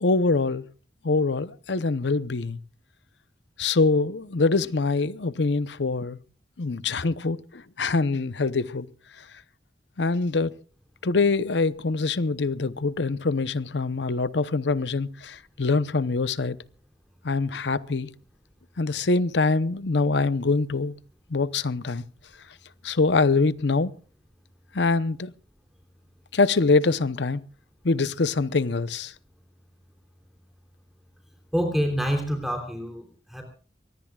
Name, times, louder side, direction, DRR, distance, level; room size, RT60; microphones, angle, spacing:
voice 1, 0.0-0.7 1.0-2.6 3.6-6.2 6.6-8.9 9.2-9.3 10.0-10.5 11.0-16.6 17.2-18.1 18.8-21.0 21.3-22.0 22.8-23.9 24.7-25.3 26.3-27.4 27.8-29.1, left 3 dB, 70° left, 0.8 m, -24 dB
voice 2, 31.5-33.4, equal, ahead, 3.2 m, -27 dB
24.0 x 19.5 x 2.4 m
head